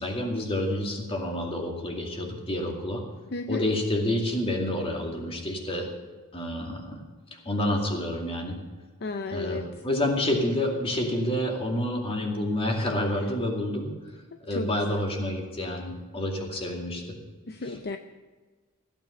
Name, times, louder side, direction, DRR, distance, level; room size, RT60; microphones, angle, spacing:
voice 1, 0.0-3.0 3.5-5.9 6.3-7.0 7.4-8.6 9.3-13.9 14.5-17.2 17.6-17.8, left 1 dB, 25° left, 1 dB, 2.4 m, -28 dB
voice 2, 3.3-3.6 9.0-9.6 14.5-15.0 17.5-18.0, left 3 dB, 45° left, 7 dB, 0.6 m, -33 dB
15.5 x 9.0 x 6.6 m, 1.4 s
head